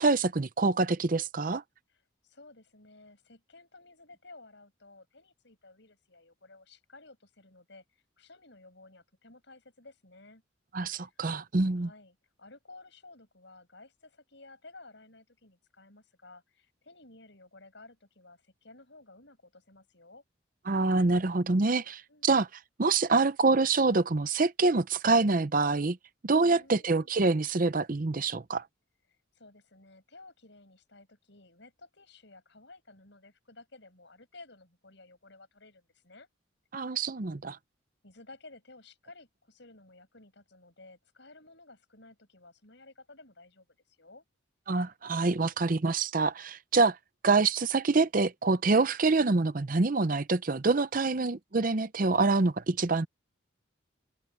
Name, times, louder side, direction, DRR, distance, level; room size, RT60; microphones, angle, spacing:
voice 1, 0.0-1.6 10.7-11.9 20.7-22.5 22.8-26.0 26.2-28.6 36.7-37.6 44.7-47.0 47.2-53.1, right 3 dB, 45° right, 0.7 m, -26 dB
voice 2, 1.9-7.8 8.2-10.4 10.9-11.2 11.8-20.2 22.1-22.4 26.4-27.1 29.3-36.3 38.0-44.2 51.0-51.3, left 2 dB, 60° left, 7.2 m, -54 dB
open air
head